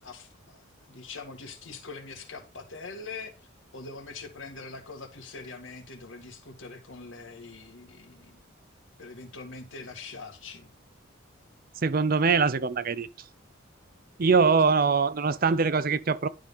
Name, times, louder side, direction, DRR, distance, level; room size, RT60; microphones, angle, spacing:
voice 1, 0.0-8.4 9.0-10.7, left 4 dB, 70° left, 2.0 m, -43 dB
voice 2, 11.8-13.1 14.2-16.3, right 5 dB, 45° right, 0.6 m, -23 dB
11.5 x 3.9 x 5.5 m
head